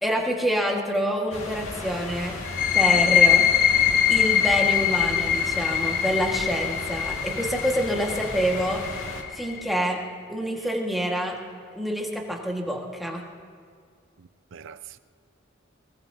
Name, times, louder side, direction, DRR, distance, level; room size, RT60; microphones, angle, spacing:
voice 1, 0.0-2.4 2.7-3.4 4.1-8.8 9.3-10.0 10.3-11.4 11.7-13.2, equal, ahead, 1.7 m, -27 dB
sound 1, 1.3-9.2, left 2 dB, 75° left, 1.9 m, -36 dB
sound 2, 2.5-9.9, left 9 dB, 45° left, 0.8 m, -23 dB
voice 2, 14.2-15.0, right 7 dB, 65° right, 0.5 m, -43 dB
23.0 x 20.0 x 2.8 m
head